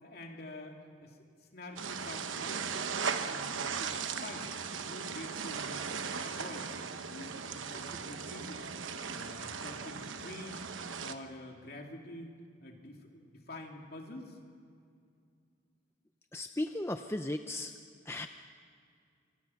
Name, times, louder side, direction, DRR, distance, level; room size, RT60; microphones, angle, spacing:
voice 1, 0.0-1.2 1.5-2.8 3.2-4.5 4.8-6.8 7.1-8.6 9.1-10.7 11.0-12.3 12.6-14.4, left 1 dB, 50° left, 1 dB, 3.0 m, -47 dB
sound 1, 1.8-11.2, right 6 dB, 80° right, 1.1 m, -38 dB
voice 2, 16.3-17.7 18.1-18.3, left 1 dB, 15° left, 7 dB, 0.5 m, -36 dB
27.0 x 24.0 x 5.9 m, 2.3 s
head